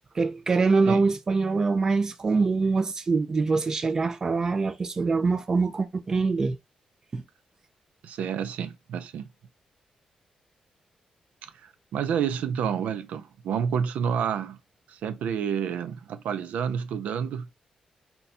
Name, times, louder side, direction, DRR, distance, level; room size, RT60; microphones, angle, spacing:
voice 1, 0.1-6.6 7.1-7.2, right 4 dB, 25° right, 0.5 m, -24 dB
voice 2, 8.0-9.3 11.4-14.6 14.9-17.5, right 7 dB, 85° right, 0.5 m, -29 dB
4.0 x 2.3 x 4.1 m
wide cardioid pair, 165°, 2 cm